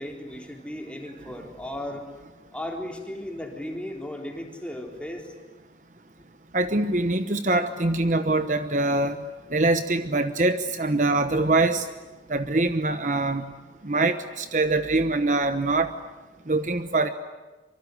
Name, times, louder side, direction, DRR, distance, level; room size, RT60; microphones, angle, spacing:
voice 1, 0.0-2.1 2.5-5.3, left 1 dB, 5° left, 1 dB, 3.6 m, -36 dB
voice 2, 6.5-9.2 9.5-11.9 12.3-13.5 13.8-15.9 16.5-17.1, right 2 dB, 45° right, 9 dB, 1.0 m, -23 dB
25.0 x 24.5 x 9.7 m, 1.2 s
head